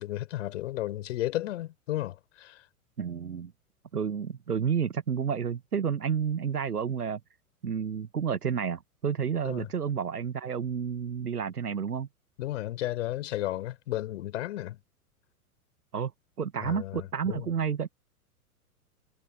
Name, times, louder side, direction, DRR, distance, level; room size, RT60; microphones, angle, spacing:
voice 1, 0.0-2.6 9.4-9.7 12.4-14.8 16.6-17.5, left 14 dB, 55° left, 3.9 m, -33 dB
voice 2, 3.0-3.5 3.9-7.2 7.6-12.1 15.9-16.1 16.4-17.9, right 7 dB, 85° right, 1.0 m, -30 dB
figure-of-eight pair, 100°, 45 cm